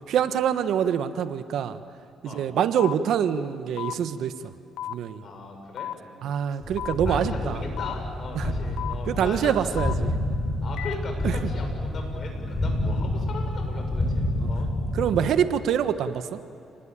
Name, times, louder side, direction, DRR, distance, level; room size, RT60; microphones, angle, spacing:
voice 1, 0.1-1.8 2.2-4.5 4.9-5.2 6.2-7.6 8.3-8.5 9.1-10.1 11.2-11.4 14.4-14.5 14.9-16.4, right 9 dB, 75° right, 10 dB, 1.3 m, -25 dB
sound 1, 2.8-2.9 3.8-3.9 4.8-4.9 5.8-5.9 6.8-6.9 7.8-7.9 8.8-8.9 9.8-9.9 10.8-10.9, left 12 dB, 85° left, 0.8 m, -32 dB
voice 2, 5.2-6.3 7.1-9.7 10.6-14.7 15.2-15.3, left 3 dB, 50° left, 3 dB, 7.1 m, -38 dB
sound 2, 6.6-15.3, left 1 dB, 25° left, 6.1 m, -28 dB
29.5 x 20.0 x 9.1 m, 2.7 s
cardioid pair, 100°, 0 cm